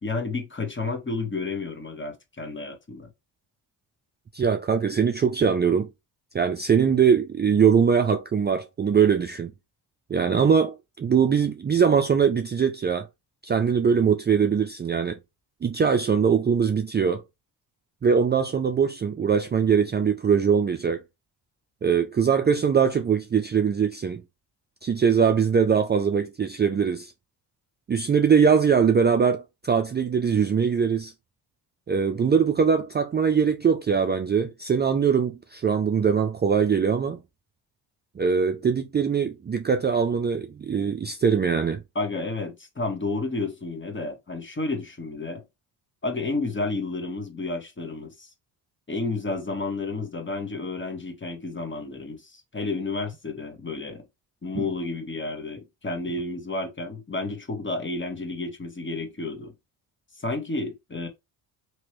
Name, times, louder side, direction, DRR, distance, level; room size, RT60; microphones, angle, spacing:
voice 1, 0.0-3.1 41.9-45.4 46.0-48.3 48.9-54.0 54.4-59.5 60.2-61.1, left 3 dB, 25° left, 1.3 m, -31 dB
voice 2, 4.3-5.9 6.3-9.5 10.1-13.1 13.4-15.2 15.6-17.2 18.0-21.0 21.8-24.2 24.8-27.1 27.9-31.1 31.9-37.2 38.2-41.8 54.6-54.7, right 6 dB, 25° right, 0.4 m, -22 dB
3.0 x 3.0 x 3.0 m
supercardioid pair, 55°, 45 cm